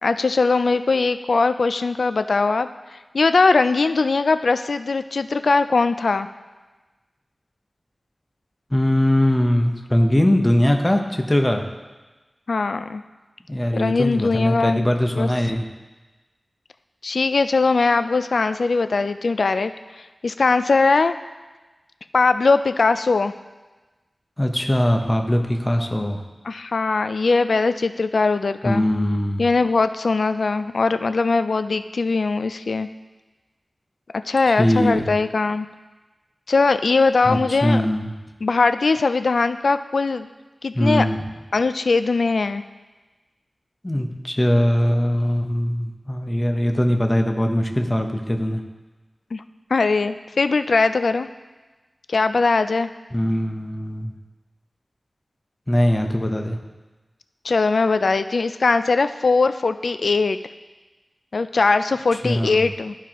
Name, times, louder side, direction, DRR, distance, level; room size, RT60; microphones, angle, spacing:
voice 1, 0.0-2.7 3.1-6.3 12.5-13.0 13.7-14.9 15.1-15.3 17.0-21.2 22.1-23.3 26.4-28.8 29.4-32.9 34.3-35.7 36.5-37.8 38.4-40.3 40.6-41.1 41.5-42.6 49.3-49.4 49.7-51.3 52.1-52.9 57.4-60.4 61.3-63.0, left 3 dB, 85° left, 11 dB, 0.3 m, -20 dB
voice 2, 8.7-11.6 13.5-15.6 24.4-26.2 28.6-29.4 34.6-35.1 37.2-38.1 40.8-41.2 43.8-48.6 53.1-54.1 55.7-56.6 62.2-62.6, equal, 20° left, 3 dB, 0.9 m, -21 dB
13.5 x 4.6 x 2.9 m, 1.2 s
wide cardioid pair, 45°, 0 cm